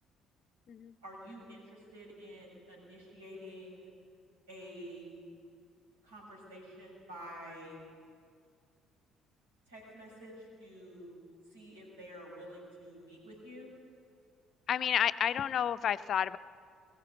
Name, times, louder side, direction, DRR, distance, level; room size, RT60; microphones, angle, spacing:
voice 1, 1.0-3.9 4.5-5.1 6.0-7.8 9.7-11.2 11.5-13.7, equal, 75° right, -4 dB, 6.7 m, -49 dB
voice 2, 14.7-16.4, left 9 dB, 45° left, 15 dB, 0.5 m, -30 dB
22.0 x 14.0 x 8.6 m, 2.2 s
figure-of-eight pair, 50°, 0 cm